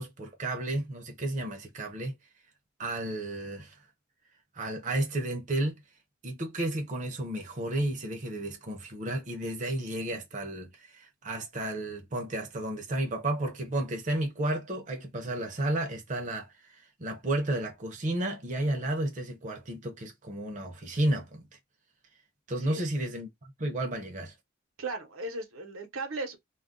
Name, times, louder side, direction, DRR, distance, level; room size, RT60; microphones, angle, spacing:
voice 1, 0.0-2.1 2.8-3.8 4.5-5.8 6.2-21.5 22.5-23.3 23.6-24.3, right 1 dB, 35° right, 0.6 m, -32 dB
voice 2, 24.8-26.4, right 2 dB, 80° right, 0.9 m, -36 dB
2.3 x 2.1 x 3.7 m
head